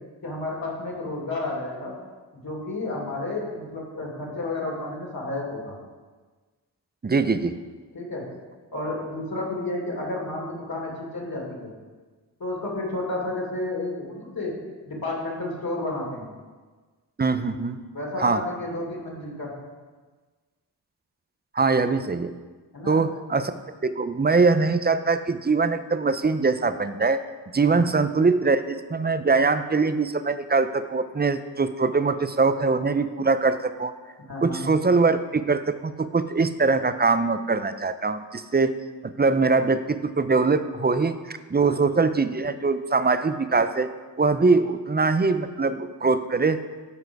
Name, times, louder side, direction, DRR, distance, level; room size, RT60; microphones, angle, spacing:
voice 1, 0.2-1.9 2.3-5.7 7.9-8.3 8.7-11.7 12.4-14.6 14.9-16.3 17.9-19.5 22.7-23.0 27.6-27.8 34.3-34.6 41.6-41.8, left 2 dB, 50° left, -3 dB, 3.2 m, -31 dB
voice 2, 7.0-7.6 17.2-17.8 18.2-18.4 21.5-22.3 22.9-23.5 23.8-27.2 27.5-33.9 34.4-38.8 39.0-43.9 44.2-46.6, right 4 dB, 25° right, 11 dB, 0.6 m, -22 dB
12.5 x 4.8 x 4.7 m, 1.4 s
cardioid pair, 45°, 43 cm